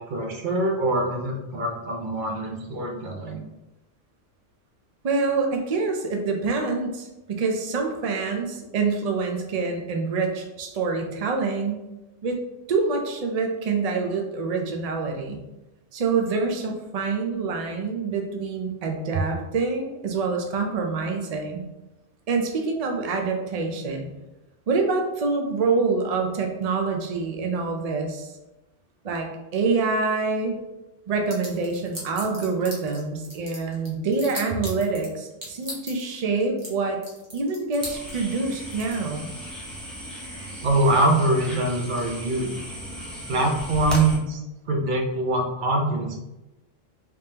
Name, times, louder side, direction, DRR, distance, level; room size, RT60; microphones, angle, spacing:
voice 1, 0.0-3.4 40.6-42.5 43.3-44.4 44.7-46.2, right 2 dB, 50° right, 1 dB, 0.7 m, -24 dB
voice 2, 5.0-11.9 12.2-12.4 12.7-15.4 15.9-21.6 22.3-24.1 24.7-28.3 29.0-30.6 31.1-37.0 37.3-39.3, right 4 dB, 80° right, 3 dB, 0.3 m, -26 dB
sound 1, 31.3-33.0 33.2-35.1 35.4-36.1 36.4-36.7 37.0-39.0, equal, 15° right, 1.0 m, -36 dB
sound 2, 37.8-44.2, equal, ahead, 0.5 m, -36 dB
3.4 x 3.4 x 2.8 m, 0.99 s
omnidirectional pair, 1.3 m